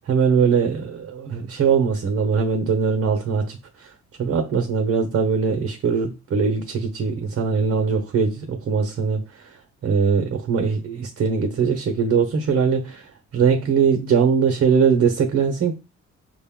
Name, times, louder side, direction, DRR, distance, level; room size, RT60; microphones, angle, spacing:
voice 1, 0.0-3.9 4.2-15.7, right 6 dB, 50° right, 0.8 m, -21 dB
5.1 x 2.2 x 3.6 m
cardioid pair, 90°, 30 cm